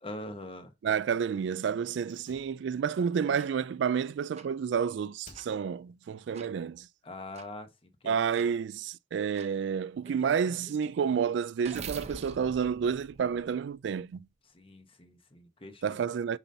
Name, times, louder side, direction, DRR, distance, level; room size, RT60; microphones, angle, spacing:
voice 1, 0.0-0.7 7.0-8.2 14.5-16.0, left 1 dB, 30° left, 1.0 m, -43 dB
voice 2, 0.8-6.9 8.0-14.3 15.8-16.4, right 7 dB, 75° right, 0.3 m, -30 dB
Slam, 2.0-4.8 5.2-6.0 6.2-6.3, left 2 dB, 45° left, 2.2 m, -59 dB
sound 1, 3.3-3.5 4.3-4.5 5.3-5.5 6.3-6.5 7.3-7.5 8.3-8.5 9.3-9.5 10.0-13.9, right 4 dB, 35° right, 0.7 m, -45 dB
7.0 x 5.5 x 2.7 m
head